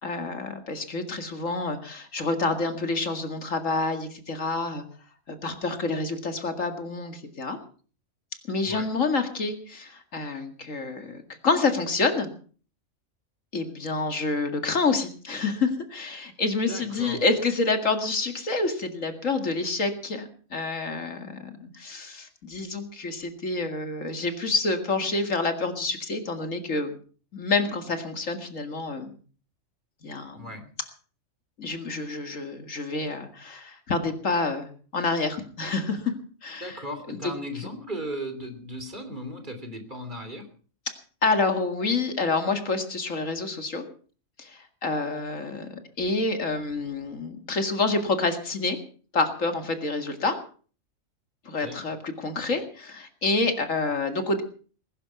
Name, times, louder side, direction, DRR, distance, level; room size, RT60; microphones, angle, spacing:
voice 1, 0.0-4.8 5.3-7.6 8.5-12.3 13.5-26.9 27.3-29.1 30.0-30.6 31.6-36.1 36.4-37.3 41.2-43.8 44.4-48.8 49.1-50.4 51.5-54.4, left 3 dB, 70° left, 6 dB, 2.5 m, -28 dB
voice 2, 16.7-17.2 30.3-30.6 36.6-40.5 51.6-51.8, equal, 35° right, 7 dB, 3.2 m, -36 dB
21.0 x 11.0 x 5.8 m, 0.42 s
omnidirectional pair, 1.4 m